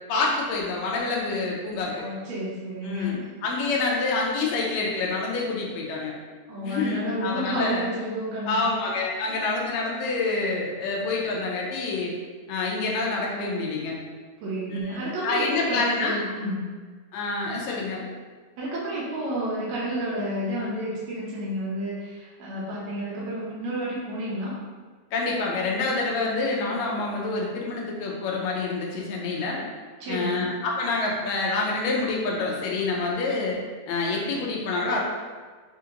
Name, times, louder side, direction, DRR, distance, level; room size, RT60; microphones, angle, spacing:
voice 1, 0.1-2.0 2.8-6.1 6.6-7.9 8.5-12.1 12.5-14.0 14.7-16.2 17.1-18.0 25.1-29.6 30.1-33.6 33.9-35.0, left 3 dB, 75° left, -2 dB, 1.6 m, -27 dB
voice 2, 1.9-3.2 3.7-3.8 6.5-8.9 9.3-9.5 14.4-16.6 18.6-24.6 30.0-30.5, right 1 dB, 75° right, -7 dB, 1.7 m, -31 dB
5.0 x 2.8 x 2.5 m, 1.5 s
omnidirectional pair, 3.8 m